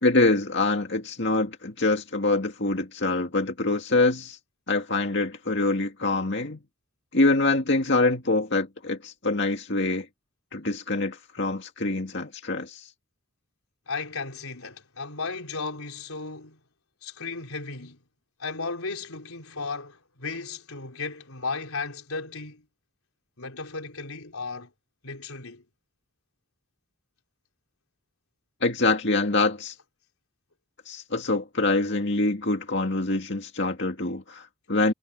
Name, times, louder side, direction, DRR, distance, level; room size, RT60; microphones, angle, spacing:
voice 1, 0.0-4.4 4.7-6.6 7.1-10.1 10.5-12.9 28.6-29.7 30.9-34.9, left 2 dB, 55° left, 2.2 m, -25 dB
voice 2, 13.9-16.6 17.0-18.0 18.4-22.7 23.4-24.7 25.0-25.6, left 4 dB, 85° left, 4.1 m, -35 dB
head